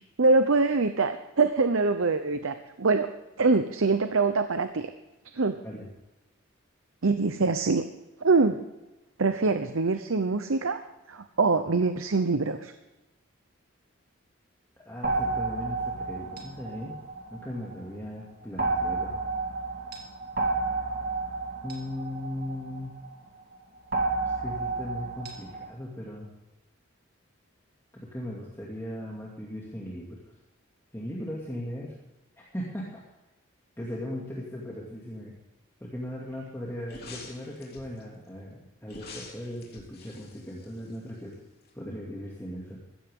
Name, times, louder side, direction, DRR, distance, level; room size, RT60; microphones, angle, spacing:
voice 1, 0.2-3.1 3.4-4.9 5.3-5.5 7.0-7.8 8.2-8.6 9.2-10.8 11.1-12.7, right 3 dB, 85° right, 9 dB, 0.8 m, -24 dB
voice 2, 14.8-17.0 17.3-19.1 21.6-22.9 24.2-26.3 27.9-30.2 30.9-32.0 32.4-33.0 33.8-35.3 35.8-41.4 41.7-42.8, left 1 dB, 15° left, -5 dB, 2.4 m, -38 dB
sound 1, 15.0-17.8 18.6-23.1 23.9-25.7, right 3 dB, 50° right, 2.3 m, -31 dB
sound 2, 36.9-38.0 38.9-41.3 41.6-41.7, left 4 dB, 50° left, 3.0 m, -47 dB
16.0 x 14.5 x 3.7 m, 1.0 s
head